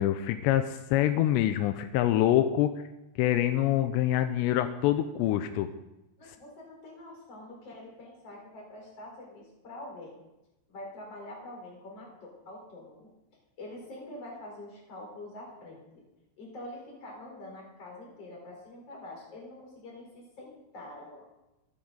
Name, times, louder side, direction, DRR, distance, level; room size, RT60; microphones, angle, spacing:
voice 1, 0.0-2.7 3.2-5.7, left 12 dB, 85° left, 9 dB, 2.5 m, -25 dB
voice 2, 6.2-10.2 10.7-13.1 13.6-16.0 16.4-21.2, left 1 dB, 35° left, -2 dB, 4.7 m, -45 dB
25.0 x 8.9 x 4.0 m, 0.96 s
omnidirectional pair, 5.6 m